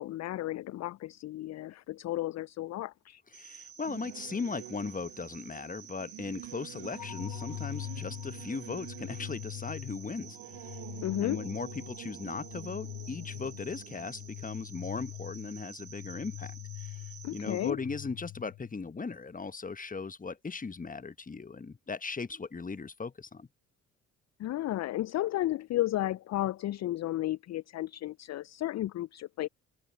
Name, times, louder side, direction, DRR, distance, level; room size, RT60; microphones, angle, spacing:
voice 1, 0.0-3.2 11.0-11.5 17.2-17.8 24.4-29.5, left 14 dB, 45° left, 0.5 m, -33 dB
voice 2, 3.3-10.8 11.2-17.0 17.3-23.5, left 4 dB, 20° left, 1.2 m, -38 dB
Cricket, 3.3-17.7, right 7 dB, 50° right, 3.4 m, -51 dB
Singing / Musical instrument, 3.8-15.7, right 20 dB, 70° right, 1.1 m, -49 dB
sound 1, 6.9-18.9, left 15 dB, 70° left, 5.3 m, -43 dB
hypercardioid pair, 45°, 39 cm